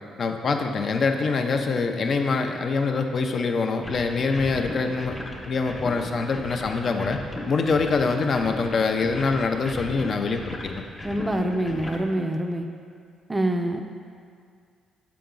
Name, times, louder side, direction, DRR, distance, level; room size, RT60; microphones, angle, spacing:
voice 1, 0.2-5.2 5.5-7.2 7.5-10.8, left 4 dB, 50° left, 5 dB, 0.5 m, -24 dB
sound 1, 3.8-12.0, left 1 dB, 25° left, 1.0 m, -37 dB
voice 2, 11.0-12.7 13.3-13.8, right 1 dB, 15° right, 5 dB, 0.4 m, -25 dB
6.8 x 4.7 x 3.8 m, 2.2 s
cardioid pair, 80°, 0 cm